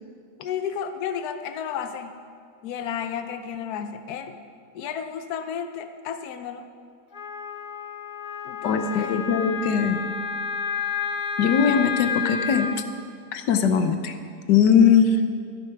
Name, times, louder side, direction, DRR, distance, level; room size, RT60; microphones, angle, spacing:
voice 1, 0.4-2.1 2.6-4.4 4.7-6.7 8.4-9.2, left 8 dB, 70° left, 8 dB, 1.2 m, -32 dB
Wind instrument woodwind instrument, 7.1-12.8, left 6 dB, 45° left, 0.6 m, -30 dB
voice 2, 8.6-10.0 11.4-12.7 13.3-14.2 14.5-15.2, left 7 dB, 85° left, 8 dB, 1.4 m, -20 dB
12.5 x 11.5 x 5.8 m, 2.2 s
omnidirectional pair, 1.8 m